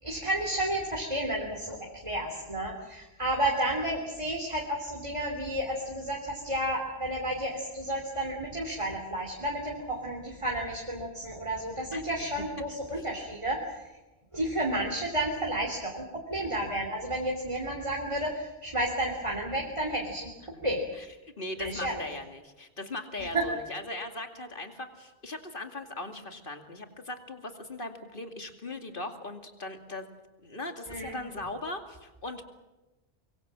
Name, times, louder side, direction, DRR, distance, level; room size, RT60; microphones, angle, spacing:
voice 1, 0.0-13.8 14.3-16.0 16.3-20.3 20.6-20.8 21.6-22.0 23.2-23.4 30.9-31.2, right 1 dB, 25° right, 0 dB, 3.3 m, -31 dB
voice 2, 21.4-30.1 30.4-32.5, left 2 dB, 50° left, 6 dB, 2.7 m, -39 dB
24.5 x 23.5 x 7.5 m, 1.1 s
omnidirectional pair, 1.2 m